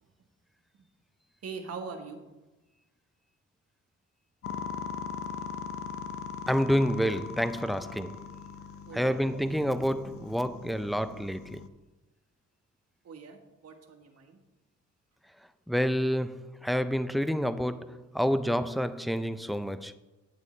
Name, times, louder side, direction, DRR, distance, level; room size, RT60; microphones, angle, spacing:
voice 1, 1.4-2.2 8.9-9.4 13.0-14.4, right 5 dB, 55° right, 1.4 m, -42 dB
sound 1, 4.4-11.7, left 6 dB, 50° left, 0.6 m, -40 dB
voice 2, 6.5-8.2 8.9-11.7 15.7-19.9, equal, ahead, 0.4 m, -28 dB
8.8 x 8.5 x 3.2 m
cardioid pair, 90°, 30 cm